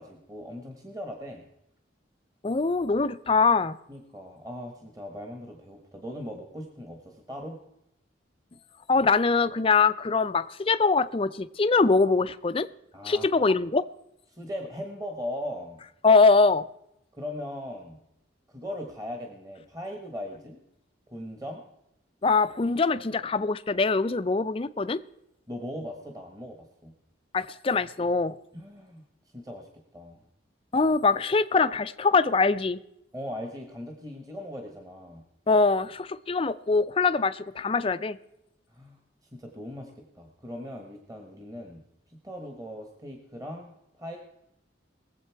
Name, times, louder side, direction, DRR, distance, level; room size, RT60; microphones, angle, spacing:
voice 1, 0.0-1.5 3.9-7.6 12.9-13.3 14.3-15.8 17.1-18.0 18.5-20.6 21.1-21.6 25.5-26.9 28.5-29.0 29.3-30.2 33.1-35.2 38.7-39.0 39.3-41.8 42.1-44.2, equal, 20° right, 3 dB, 1.2 m, -39 dB
voice 2, 2.4-3.8 8.9-12.7 13.0-13.8 16.0-16.6 22.2-25.0 27.3-28.4 30.7-32.8 35.5-38.2, left 4 dB, 30° left, 13 dB, 0.4 m, -23 dB
21.0 x 7.6 x 4.6 m, 0.81 s
head